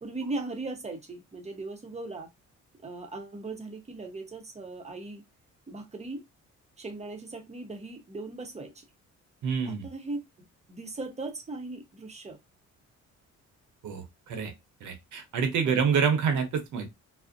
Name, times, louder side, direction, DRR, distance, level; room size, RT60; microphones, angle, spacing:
voice 1, 0.0-2.3 2.8-5.2 5.7-6.2 6.8-8.9 9.6-12.4 15.6-15.8, right 2 dB, 20° right, 0.7 m, -38 dB
voice 2, 9.4-9.9 13.8-14.5 14.8-16.9, right 6 dB, 75° right, 0.8 m, -27 dB
2.4 x 2.0 x 2.5 m
cardioid pair, 90°, 30 cm